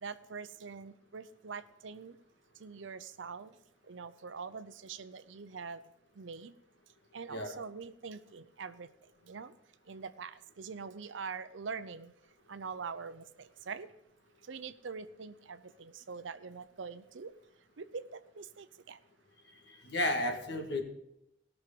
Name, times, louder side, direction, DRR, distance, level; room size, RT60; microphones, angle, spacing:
voice 1, 0.0-2.1 2.6-3.5 3.9-5.8 6.2-6.5 7.1-8.9 9.3-9.5 9.9-12.1 12.5-13.9 14.5-17.3 17.8-19.0, right 5 dB, 85° right, 12 dB, 0.6 m, -44 dB
voice 2, 19.7-20.8, left 1 dB, 65° left, 4 dB, 1.9 m, -33 dB
18.0 x 6.4 x 5.3 m, 0.83 s
head